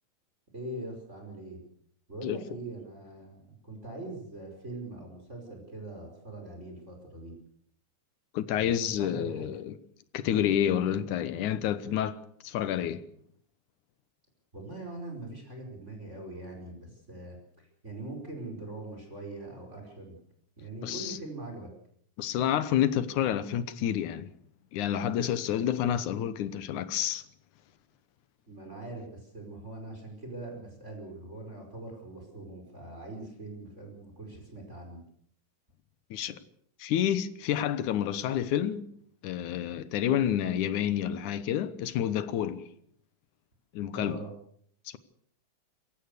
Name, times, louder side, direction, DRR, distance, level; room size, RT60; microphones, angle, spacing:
voice 1, 0.5-1.6 2.1-7.3 8.6-9.5 14.5-20.1 20.6-21.7 28.5-35.0 43.9-44.3, right 2 dB, 20° right, 5.3 m, -42 dB
voice 2, 8.3-9.7 10.1-12.2 12.4-13.0 20.8-21.2 22.2-24.3 24.7-27.2 36.1-36.4 36.8-38.9 39.2-42.6 43.7-44.2, left 10 dB, 85° left, 2.6 m, -29 dB
27.5 x 15.5 x 6.8 m
omnidirectional pair, 3.4 m